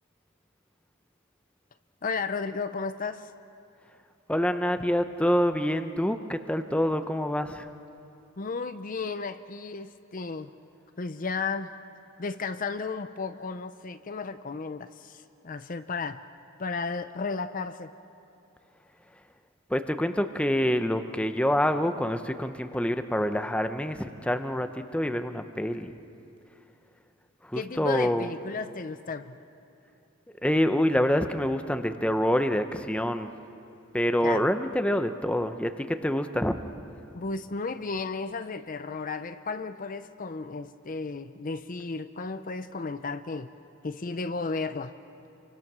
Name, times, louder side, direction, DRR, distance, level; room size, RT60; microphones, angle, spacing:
voice 1, 2.0-3.3 8.4-10.5 11.0-11.7 12.2-16.2 16.6-17.9 27.5-29.4 34.2-34.5 37.1-43.5 43.8-44.9, left 4 dB, 40° left, 10 dB, 0.6 m, -34 dB
voice 2, 4.3-7.7 19.7-25.9 27.4-28.3 30.4-33.3 33.9-36.6, equal, 5° left, 8 dB, 0.7 m, -26 dB
28.5 x 24.5 x 6.2 m, 2.7 s
head